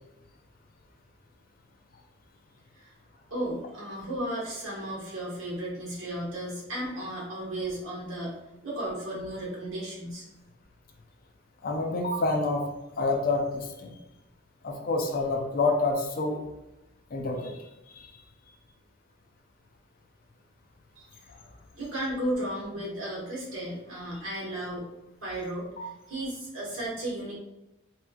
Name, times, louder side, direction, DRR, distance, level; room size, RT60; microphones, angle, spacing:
voice 1, 3.3-8.4 8.6-10.2 21.0-21.2 21.7-24.9 25.2-27.3, right 1 dB, 70° right, -4 dB, 1.4 m, -34 dB
voice 2, 11.6-12.7 13.0-14.0 14.6-16.4 17.1-18.1 25.8-25.9, left 3 dB, 45° left, 2 dB, 0.4 m, -28 dB
3.4 x 2.9 x 2.3 m, 0.98 s
head